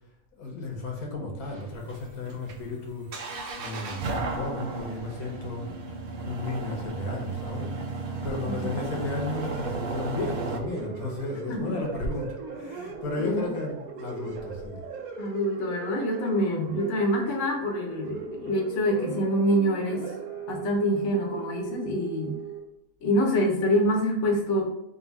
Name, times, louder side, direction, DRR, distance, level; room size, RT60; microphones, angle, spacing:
voice 1, 0.4-3.1 3.6-7.7 8.2-14.8, left 2 dB, 80° left, 0 dB, 1.5 m, -34 dB
sound 1, 1.4-10.6, right 3 dB, 60° right, 0.6 m, -34 dB
sound 2, 8.8-22.6, right 5 dB, 80° right, 1.2 m, -38 dB
voice 2, 11.5-11.8 13.2-13.4 15.2-20.0 20.5-22.3 23.0-24.7, equal, 60° left, 0 dB, 1.1 m, -26 dB
4.0 x 2.7 x 4.0 m, 0.91 s
omnidirectional pair, 1.5 m